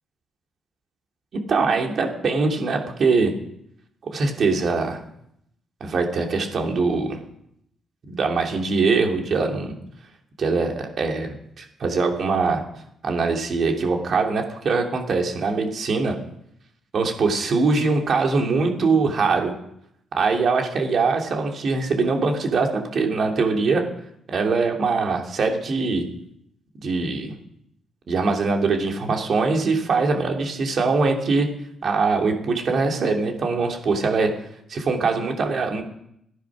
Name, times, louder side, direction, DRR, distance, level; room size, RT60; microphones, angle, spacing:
voice 1, 1.5-3.3 4.1-5.0 5.8-7.2 8.1-9.7 10.4-11.3 11.6-12.6 13.0-16.2 16.9-19.5 20.1-23.8 24.3-26.0 26.8-27.3 28.1-31.5 31.8-34.3 34.7-35.8, right 4 dB, 60° right, 2 dB, 2.9 m, -22 dB
14.5 x 10.0 x 6.2 m, 0.74 s
cardioid pair, 75°, 0 cm